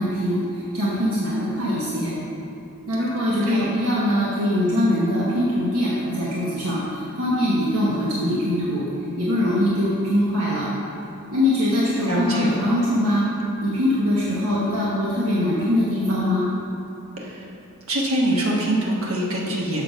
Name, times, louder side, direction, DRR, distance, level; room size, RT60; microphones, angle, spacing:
voice 1, 0.0-2.1 2.9-8.8 9.2-10.7 11.3-13.2 13.6-16.4, left 1 dB, 85° right, -7 dB, 1.1 m, -22 dB
voice 2, 12.0-12.5 17.2-17.5 17.9-19.8, right 1 dB, 70° right, -3 dB, 1.4 m, -24 dB
6.9 x 6.6 x 5.2 m, 2.8 s
head